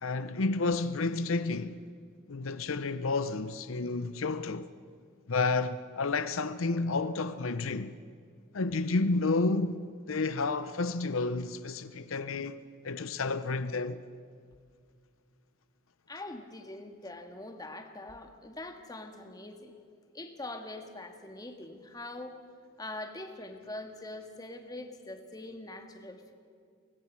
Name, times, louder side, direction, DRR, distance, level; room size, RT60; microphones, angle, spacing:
voice 1, 0.0-1.8 2.3-4.7 5.3-7.9 8.5-12.6 12.8-14.0, left 3 dB, 80° left, 0.7 m, -30 dB
voice 2, 16.1-19.8 20.1-22.4 22.8-26.3, left 2 dB, 20° left, 1.8 m, -43 dB
24.5 x 19.0 x 7.4 m
head